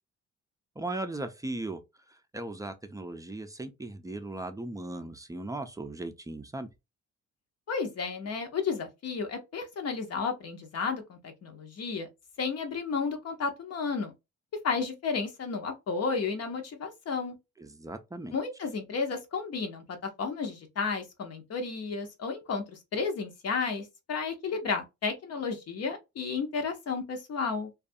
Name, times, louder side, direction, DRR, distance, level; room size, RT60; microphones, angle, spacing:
voice 1, 0.8-1.8 2.1-6.7 17.6-18.4, right 2 dB, 10° right, 0.4 m, -37 dB
voice 2, 7.7-12.1 12.4-14.1 14.6-17.3 18.3-27.7, left 5 dB, 55° left, 0.7 m, -32 dB
2.5 x 2.3 x 2.5 m
cardioid pair, 90°, 30 cm